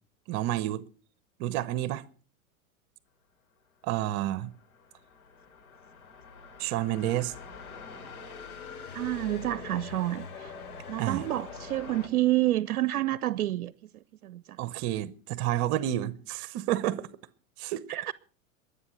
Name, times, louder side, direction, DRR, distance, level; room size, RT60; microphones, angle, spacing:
voice 1, 0.3-0.8 1.4-2.0 3.8-4.5 6.6-7.3 11.0-11.3 14.6-17.1 17.6-18.0, right 13 dB, 50° right, 1.0 m, -30 dB
sound 1, 4.1-12.1, left 5 dB, 85° left, 3.9 m, -44 dB
voice 2, 8.9-10.5 10.9-14.6 17.9-18.1, right 15 dB, 85° right, 0.7 m, -29 dB
22.5 x 8.5 x 5.9 m
hypercardioid pair, 110°, 43 cm